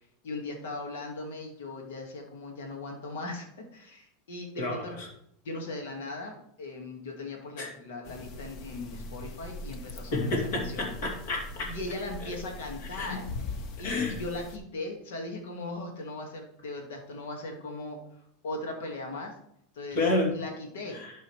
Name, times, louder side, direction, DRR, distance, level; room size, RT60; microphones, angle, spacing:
voice 1, 0.2-3.5 3.7-5.0 5.5-10.9 11.7-13.2 13.8-18.0 18.4-19.3 19.7-20.0 20.3-21.0, left 2 dB, 85° left, 2 dB, 1.8 m, -38 dB
voice 2, 4.6-5.1 7.6-7.7 10.1-11.7 12.9-13.2 13.8-14.2 19.9-20.3 20.9-21.1, left 2 dB, 60° left, 1 dB, 2.7 m, -30 dB
sound 1, 8.0-14.6, left 2 dB, 40° left, 0.8 m, -41 dB
12.0 x 5.5 x 3.2 m, 0.72 s
supercardioid pair, 145°, 0 cm